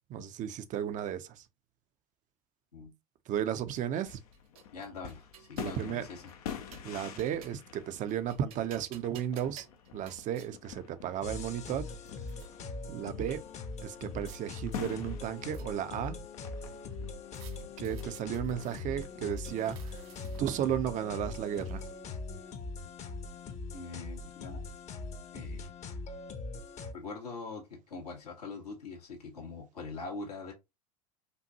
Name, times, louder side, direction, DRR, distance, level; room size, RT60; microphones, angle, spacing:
voice 1, 0.1-1.4 3.3-4.2 5.6-6.1 6.8-9.7 9.9-11.9 12.9-13.4 13.8-16.3 17.8-20.0 20.4-21.8, right 10 dB, 40° right, 0.7 m, -34 dB
sound 1, 4.0-5.8 6.3-7.7 8.1-10.5 11.3-11.4 11.6-12.5 13.8-14.4 14.7-16.0 17.3-18.8 19.3-20.6, right 8 dB, 70° right, 1.0 m, -56 dB
sound 2, 4.1-22.0, left 8 dB, 70° left, 0.8 m, -48 dB
voice 2, 4.7-6.3 23.7-24.6 25.3-25.7 26.9-30.5, left 4 dB, 85° left, 1.8 m, -43 dB
sound 3, 11.2-26.9, left 3 dB, 35° left, 1.0 m, -41 dB
5.3 x 2.6 x 2.8 m
hypercardioid pair, 80°, 20 cm